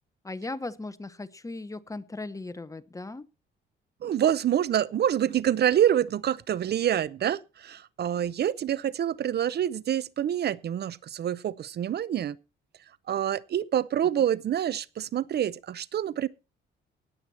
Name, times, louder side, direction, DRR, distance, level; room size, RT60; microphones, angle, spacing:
voice 1, 0.2-3.3, left 2 dB, 15° left, 1.0 m, -37 dB
voice 2, 4.0-12.4 13.1-16.3, right 10 dB, 55° right, 0.7 m, -26 dB
19.0 x 7.9 x 4.3 m
cardioid pair, 90°, 20 cm